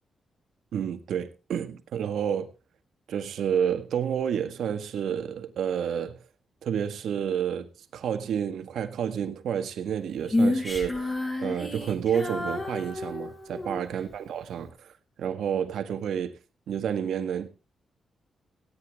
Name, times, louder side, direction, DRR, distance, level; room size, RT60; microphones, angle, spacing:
voice 1, 0.7-2.5 3.1-6.2 6.6-14.9 15.2-16.3 16.7-17.5, right 8 dB, 80° right, 1.7 m, -30 dB
Female singing, 10.3-13.8, left 2 dB, 25° left, 7.1 m, -29 dB
17.5 x 10.0 x 3.7 m
cardioid pair, 95°, 0 cm